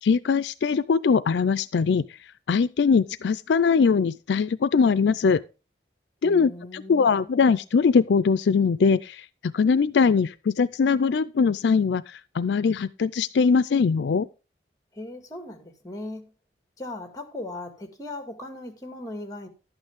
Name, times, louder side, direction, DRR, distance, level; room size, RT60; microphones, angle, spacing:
voice 1, 0.0-2.0 2.5-5.4 6.2-14.3, left 5 dB, 75° left, 0.4 m, -21 dB
voice 2, 6.2-7.3 14.9-16.3 16.8-19.5, left 2 dB, 20° left, 1.8 m, -38 dB
11.5 x 8.9 x 3.5 m
head